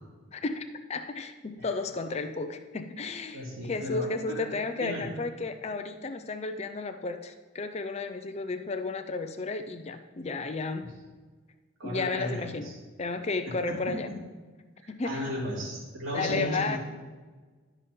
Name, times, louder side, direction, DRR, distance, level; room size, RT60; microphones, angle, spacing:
voice 1, 0.3-10.9 11.8-14.1 14.9-15.3 16.1-16.8, left 3 dB, 30° left, 8 dB, 0.4 m, -33 dB
voice 2, 3.3-4.5 4.8-5.0 11.8-12.7 13.7-14.2 14.8-16.8, equal, 70° right, -5 dB, 2.8 m, -35 dB
11.5 x 4.9 x 4.3 m, 1.4 s
head